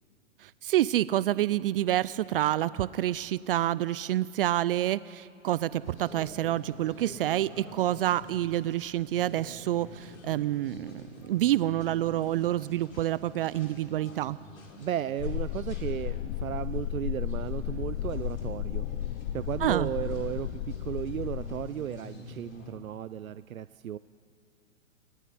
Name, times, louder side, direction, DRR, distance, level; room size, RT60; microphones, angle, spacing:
voice 1, 0.4-14.4 19.6-19.9, right 13 dB, 45° right, 18 dB, 0.5 m, -28 dB
sound 1, 5.6-22.7, left 1 dB, 90° left, 5.9 m, -48 dB
voice 2, 14.8-18.9 19.3-24.0, right 10 dB, 85° right, 14 dB, 0.7 m, -34 dB
sound 2, 15.2-21.7, left 13 dB, 55° left, 0.7 m, -34 dB
29.0 x 19.0 x 9.6 m, 2.5 s
hypercardioid pair, 130°, 40 cm